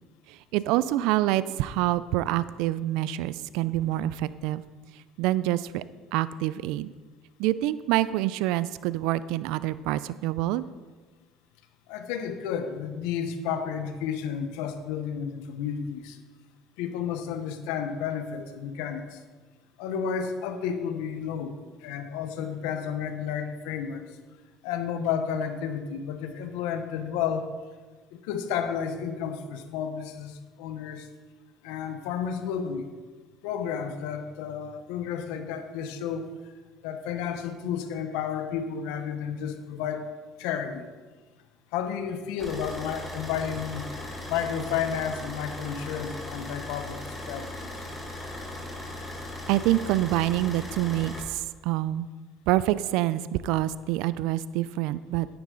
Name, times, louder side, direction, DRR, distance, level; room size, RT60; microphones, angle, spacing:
voice 1, 0.3-4.6 5.2-5.8 6.1-6.9 7.4-10.6 49.5-52.1 52.5-55.3, right 15 dB, 80° right, 16 dB, 0.3 m, -26 dB
voice 2, 11.9-16.2 16.8-19.2 19.8-24.2 24.6-27.5 28.1-31.1 31.6-32.9 33.4-36.3 36.8-40.1 40.4-40.9 41.7-43.9 44.3-47.9, left 7 dB, 85° left, 8 dB, 0.9 m, -32 dB
Car / Idling, 42.4-51.2, left 1 dB, 5° left, 2.9 m, -38 dB
9.7 x 9.3 x 3.8 m, 1.4 s
supercardioid pair, 95°, 0 cm